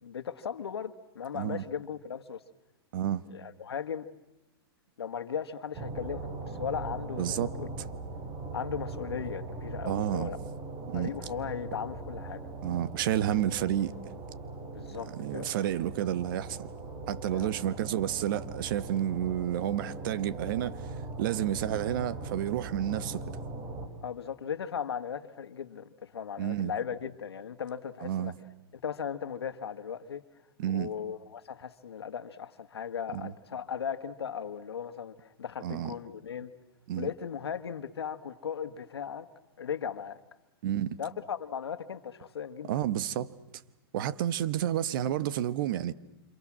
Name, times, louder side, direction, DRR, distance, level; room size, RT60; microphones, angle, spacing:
voice 1, 0.0-2.4 3.3-4.0 5.0-6.3 6.6-7.7 8.5-10.4 10.9-12.4 14.6-15.5 17.3-17.5 24.0-28.3 28.8-30.2 30.7-36.5 37.0-39.3 39.6-40.2 41.0-42.7, left 7 dB, 90° left, 1.7 m, -37 dB
voice 2, 2.9-3.2 7.2-7.5 9.8-10.3 10.9-11.1 12.6-13.9 14.9-16.7 17.1-20.9 21.2-23.2 26.4-26.7 28.0-28.3 30.6-30.9 33.1-33.3 35.6-35.9 36.9-37.1 40.6-41.0 42.7-43.3 43.9-45.9, right 11 dB, 55° right, 1.2 m, -30 dB
sound 1, 5.7-23.9, right 3 dB, 30° right, 4.1 m, -40 dB
28.0 x 27.0 x 7.5 m
hypercardioid pair, 135°, 13 cm